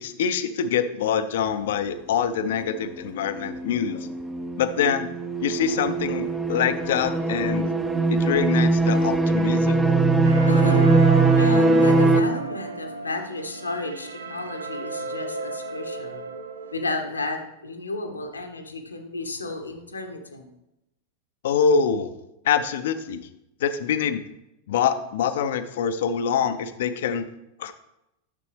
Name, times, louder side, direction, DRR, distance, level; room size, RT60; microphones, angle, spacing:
voice 1, 0.0-4.1 4.6-5.1 5.4-7.7 8.1-9.9 21.4-22.1 22.4-23.2 23.6-24.2 24.7-27.2 27.6-27.7, left 7 dB, 55° left, 10 dB, 0.6 m, -25 dB
sound 1, 3.4-12.2, right 3 dB, 10° right, 0.6 m, -21 dB
sound 2, 10.2-17.0, right 1 dB, 70° right, 0.6 m, -34 dB
voice 2, 10.5-11.0 11.4-16.2 16.7-20.5, left 2 dB, 80° left, 5 dB, 1.0 m, -32 dB
9.9 x 6.8 x 3.4 m, 0.88 s
figure-of-eight pair, 90°, 0 cm